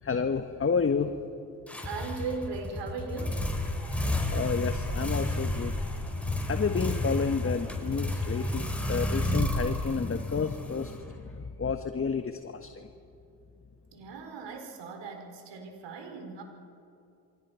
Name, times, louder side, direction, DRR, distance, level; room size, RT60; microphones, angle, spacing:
voice 1, 0.0-1.1 4.2-12.9, left 5 dB, 25° left, 7 dB, 1.5 m, -31 dB
sound 1, 1.7-11.4, left 1 dB, 5° left, 4.7 m, -31 dB
voice 2, 1.8-3.6 13.9-16.4, right 4 dB, 60° right, 4 dB, 4.5 m, -38 dB
29.0 x 24.0 x 5.8 m, 2.6 s
hypercardioid pair, 50°, 47 cm